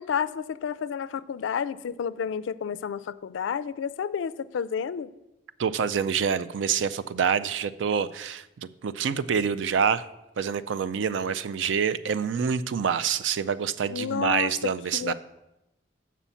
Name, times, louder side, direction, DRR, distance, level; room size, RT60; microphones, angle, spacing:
voice 1, 0.0-5.1 13.9-14.5 14.9-15.1, left 7 dB, 90° left, 0.3 m, -30 dB
voice 2, 5.6-10.0 10.4-15.1, right 7 dB, 80° right, 0.4 m, -26 dB
7.1 x 6.0 x 5.6 m
head